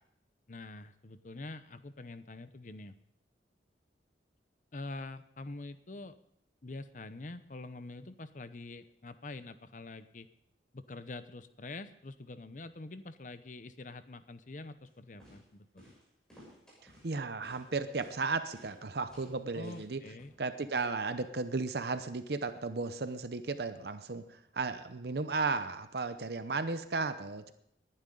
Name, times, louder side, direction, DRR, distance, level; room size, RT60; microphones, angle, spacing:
voice 1, 0.5-3.0 4.7-6.2 6.6-10.3 10.7-15.8 19.5-20.3, left 2 dB, 45° left, 12 dB, 0.7 m, -45 dB
sound 1, 14.8-14.9 15.2-15.4 15.8-16.0 16.3-17.1 17.4-17.7 18.0-18.2 18.5-18.8 19.1-19.3 19.6-19.9 20.2-20.3, equal, 5° left, 7.2 m, -56 dB
voice 2, 17.0-20.0 20.4-27.5, right 4 dB, 65° right, 10 dB, 0.7 m, -35 dB
20.0 x 11.0 x 3.9 m, 0.75 s
head